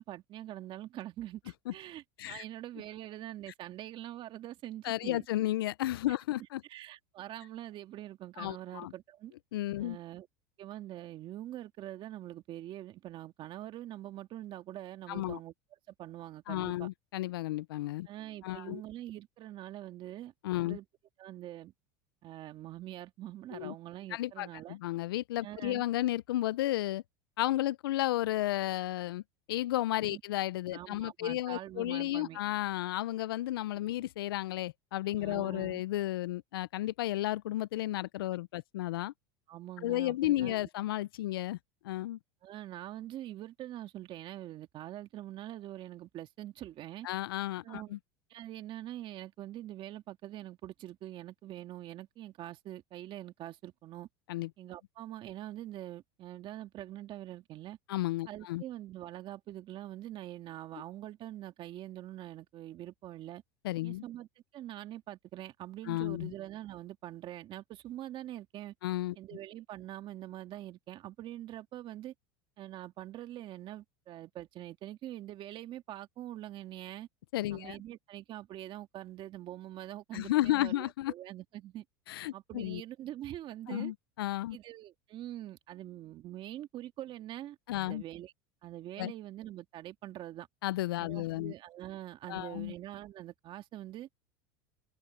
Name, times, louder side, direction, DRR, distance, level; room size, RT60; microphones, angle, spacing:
voice 1, 0.0-5.2 6.1-6.2 6.7-9.3 9.8-10.3 10.6-15.5 15.9-16.9 18.1-20.3 20.6-20.8 21.2-21.7 22.2-24.8 25.4-25.8 30.1-30.2 30.7-32.4 35.2-35.8 39.5-40.7 42.4-47.1 47.6-47.9 48.3-54.1 54.6-57.8 58.3-63.4 63.8-64.3 64.5-68.7 69.2-72.1 72.6-77.1 77.5-81.8 82.3-83.9 84.5-88.3 88.6-90.5 91.0-94.1, right 13 dB, 45° right, 2.1 m, -44 dB
voice 2, 4.8-6.6 8.4-8.9 9.5-10.0 15.1-15.4 16.5-18.1 18.4-18.8 20.4-20.8 23.5-23.7 24.1-27.0 27.4-29.2 29.5-39.1 39.8-41.6 41.8-42.2 47.0-48.0 54.3-54.5 57.9-58.6 63.6-64.0 65.9-66.3 68.8-69.2 77.3-77.8 80.1-81.1 82.1-82.8 83.7-84.6 87.7-88.0 89.0-89.1 90.6-91.5 92.3-92.7, left 15 dB, 85° left, 0.4 m, -33 dB
open air
supercardioid pair, 105°, 12 cm